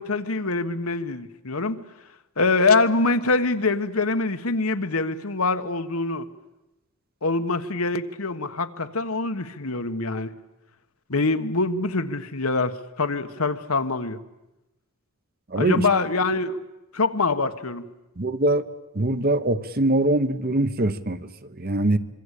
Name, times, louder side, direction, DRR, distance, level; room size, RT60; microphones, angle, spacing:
voice 1, 0.0-1.8 2.4-6.3 7.2-10.3 11.1-14.2 15.5-16.6 16.9-17.9, left 3 dB, 80° left, 9 dB, 1.5 m, -24 dB
voice 2, 15.5-15.8 18.2-18.7 18.9-22.0, right 1 dB, 45° right, 11 dB, 1.2 m, -23 dB
26.0 x 24.0 x 8.4 m, 0.97 s
head